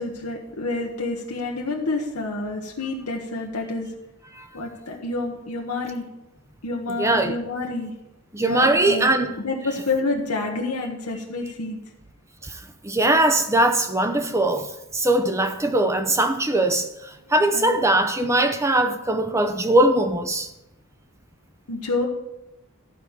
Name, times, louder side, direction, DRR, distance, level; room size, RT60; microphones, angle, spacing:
voice 1, 0.0-3.9 4.5-6.1 6.6-7.9 8.4-9.1 9.4-11.8 17.2-17.8 21.7-22.1, left 3 dB, 80° left, 1.1 m, -28 dB
voice 2, 7.0-7.4 8.3-9.4 12.4-20.5, right 1 dB, 15° right, 0.6 m, -21 dB
12.0 x 4.8 x 7.2 m
head